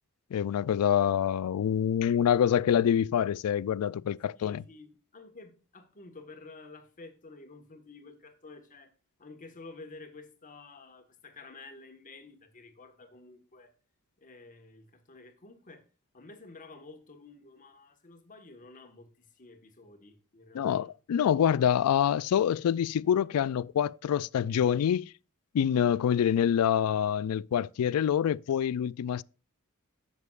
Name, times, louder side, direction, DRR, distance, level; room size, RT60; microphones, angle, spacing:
voice 1, 0.3-4.6 20.5-25.1 25.5-29.2, left 9 dB, 75° left, 0.3 m, -26 dB
voice 2, 4.3-8.9 9.2-13.7 14.2-15.9 16.1-20.9, left 3 dB, 35° left, 1.5 m, -51 dB
11.0 x 7.2 x 2.4 m
head